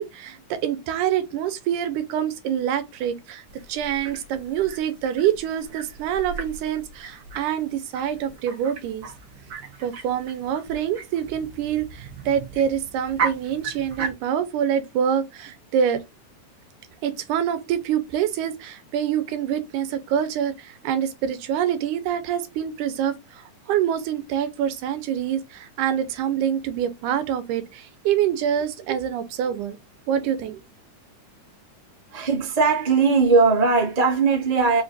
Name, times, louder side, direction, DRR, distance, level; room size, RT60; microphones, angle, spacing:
voice 1, 0.0-3.4 3.7-9.1 9.8-16.0 17.0-29.8 30.1-30.6, right 9 dB, 80° right, 2.2 m, -26 dB
sound 1, 3.5-14.1, right 5 dB, 65° right, 1.2 m, -36 dB
voice 2, 32.1-34.8, right 4 dB, 45° right, 0.5 m, -19 dB
5.0 x 2.5 x 3.9 m
omnidirectional pair, 3.6 m